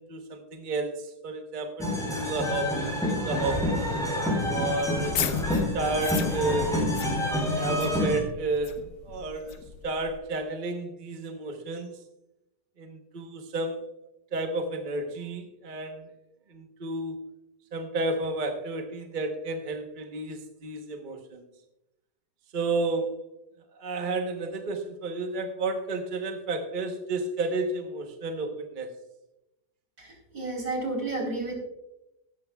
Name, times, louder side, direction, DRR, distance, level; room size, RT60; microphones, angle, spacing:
voice 1, 0.0-3.8 4.5-5.2 5.7-6.7 7.4-12.0 12.8-13.8 14.3-16.1 16.5-17.2 17.7-21.4 22.5-23.3 23.8-28.9, right 2 dB, 35° right, 4 dB, 1.0 m, -31 dB
sound 1, 1.8-8.2, left 1 dB, ahead, 4.2 m, -28 dB
sound 2, 4.9-10.2, left 7 dB, 70° left, 1.3 m, -36 dB
voice 2, 30.0-31.5, right 2 dB, 60° right, 1 dB, 3.9 m, -31 dB
16.0 x 13.0 x 2.3 m, 0.89 s
omnidirectional pair, 1.8 m